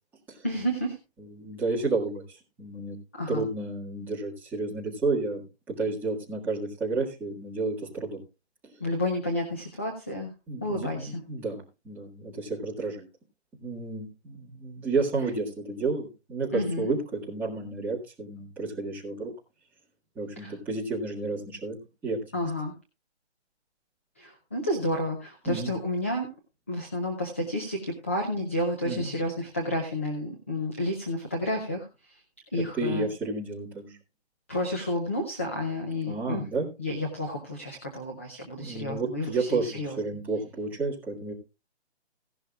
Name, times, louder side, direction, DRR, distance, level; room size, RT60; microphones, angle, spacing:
voice 1, 0.4-1.0 3.2-3.4 8.8-10.3 10.6-11.2 16.5-16.9 20.4-20.5 22.3-22.7 24.2-26.3 26.7-32.2 32.5-33.1 34.5-36.5 36.8-40.0, left 1 dB, 15° left, 2 dB, 0.5 m, -30 dB
voice 2, 1.3-2.2 2.6-3.0 3.3-5.4 5.7-8.2 10.5-13.1 13.6-19.3 20.2-21.8 22.0-22.4 25.5-25.7 28.8-29.1 32.8-33.9 36.1-36.7 38.6-41.3, right 3 dB, 5° right, -7 dB, 1.8 m, -31 dB
16.5 x 11.5 x 2.4 m, 0.29 s
hypercardioid pair, 165°, 34 cm